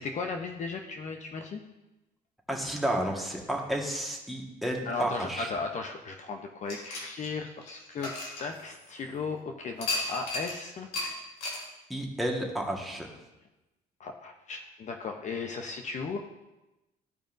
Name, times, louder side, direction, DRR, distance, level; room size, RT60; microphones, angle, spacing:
voice 1, 0.0-1.6 4.9-8.1 8.4-10.9 11.2-11.3 14.0-16.2, left 4 dB, 45° left, 4 dB, 0.7 m, -36 dB
voice 2, 2.5-5.5 11.9-13.1, right 1 dB, ahead, 0 dB, 1.5 m, -31 dB
sound 1, 6.7-9.1 9.8-10.6 10.9-11.1 11.4-11.6, left 2 dB, 85° left, 2.3 m, -34 dB
15.0 x 5.2 x 2.6 m, 1.0 s
cardioid pair, 110°, 17 cm